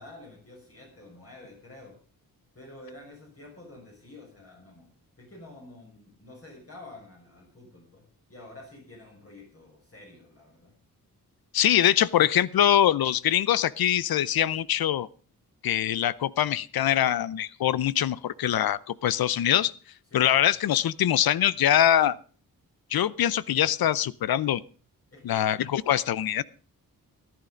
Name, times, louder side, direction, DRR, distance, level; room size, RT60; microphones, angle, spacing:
voice 1, 0.0-2.0 2.5-4.9 5.2-8.0 8.3-10.7 20.1-20.4 25.1-25.5, left 2 dB, 40° left, -1 dB, 6.2 m, -48 dB
voice 2, 11.5-15.1 15.6-19.7 20.1-22.2 22.9-24.6 25.2-26.4, left 11 dB, 85° left, 20 dB, 0.7 m, -23 dB
14.5 x 11.0 x 5.1 m, 0.40 s
wide cardioid pair, 115°, 35 cm